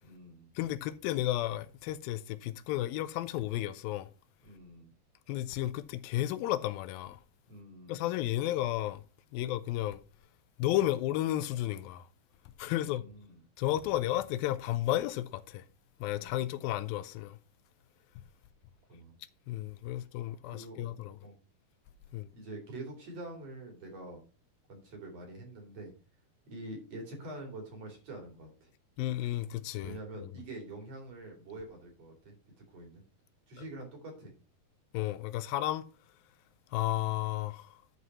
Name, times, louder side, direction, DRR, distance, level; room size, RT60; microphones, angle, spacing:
voice 1, 0.0-0.5 4.4-4.9 7.5-8.1 12.6-13.4 16.1-16.5 18.9-19.2 20.5-20.9 21.2-21.4 22.3-24.2 24.7-25.9 26.5-28.7 29.8-33.0 33.5-34.3, right 2 dB, 45° right, 3.7 m, -46 dB
voice 2, 0.6-4.1 5.3-7.2 7.9-9.0 9.3-10.0 10.6-12.1 12.6-13.0 13.6-15.6 16.0-17.4 19.5-21.2 22.1-22.3 29.0-30.3 34.9-35.9 36.7-37.8, left 14 dB, 85° left, 2.4 m, -33 dB
11.5 x 4.7 x 5.4 m
omnidirectional pair, 4.2 m